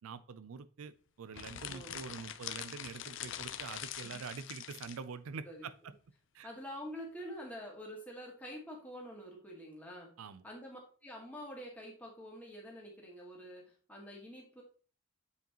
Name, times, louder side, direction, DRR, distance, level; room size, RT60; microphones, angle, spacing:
voice 1, 0.0-5.9 6.3-6.5 10.2-10.4, right 5 dB, 80° right, 0.4 m, -45 dB
sound 1, 1.3-5.0, left 10 dB, 60° left, 0.5 m, -44 dB
voice 2, 1.7-2.0 4.0-4.2 5.4-5.7 6.4-10.1 10.4-14.6, equal, 5° left, 1.8 m, -47 dB
8.0 x 4.8 x 2.9 m
head